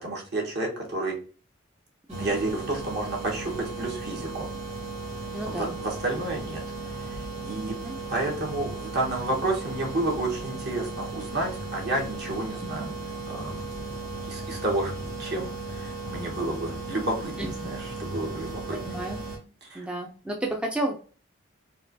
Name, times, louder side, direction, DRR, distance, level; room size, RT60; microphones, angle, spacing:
voice 1, 0.0-1.1 2.2-4.5 5.5-7.7 8.1-12.9 13.3-13.7 14.2-17.4 17.6-18.8 19.6-19.9, right 2 dB, 55° right, -1 dB, 1.2 m, -31 dB
sound 1, 2.1-19.4, right 3 dB, 40° right, 1.7 m, -36 dB
voice 2, 5.3-5.7 7.7-8.0 12.6-12.9 17.4-17.7 18.8-19.2 19.7-20.9, right 1 dB, 5° right, 1 dB, 0.4 m, -32 dB
4.3 x 2.2 x 2.6 m, 0.38 s
head